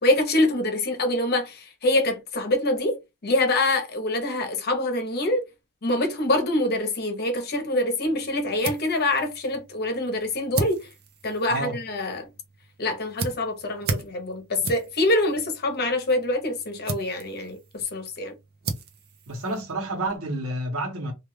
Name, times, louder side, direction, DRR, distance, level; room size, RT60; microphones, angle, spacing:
voice 1, 0.0-5.4 5.8-10.9 11.2-12.3 12.8-18.4, left 1 dB, 50° left, 0.8 m, -25 dB
sound 1, 8.0-20.2, right 4 dB, 50° right, 0.5 m, -37 dB
voice 2, 19.3-21.1, right 1 dB, 90° right, 1.0 m, -29 dB
2.4 x 2.4 x 3.1 m
head